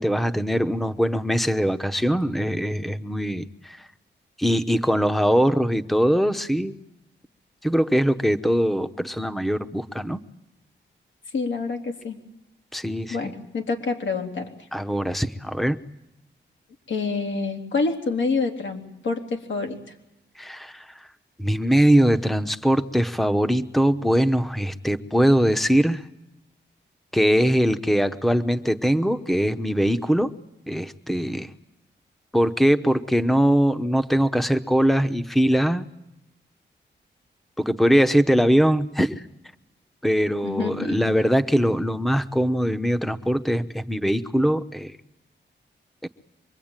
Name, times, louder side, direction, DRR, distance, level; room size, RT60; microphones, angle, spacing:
voice 1, 0.0-3.8 4.4-6.8 7.6-10.2 12.7-13.3 14.7-15.8 20.4-20.9 21.4-26.0 27.1-30.3 30.7-31.5 32.3-35.9 37.6-39.2 40.0-45.0 46.0-46.1, equal, ahead, 11 dB, 1.0 m, -21 dB
voice 2, 11.3-12.2 13.1-14.5 16.9-19.8 40.4-41.0, left 4 dB, 85° left, 3 dB, 3.7 m, -27 dB
25.0 x 22.5 x 9.0 m, 0.89 s
cardioid pair, 80°, 19 cm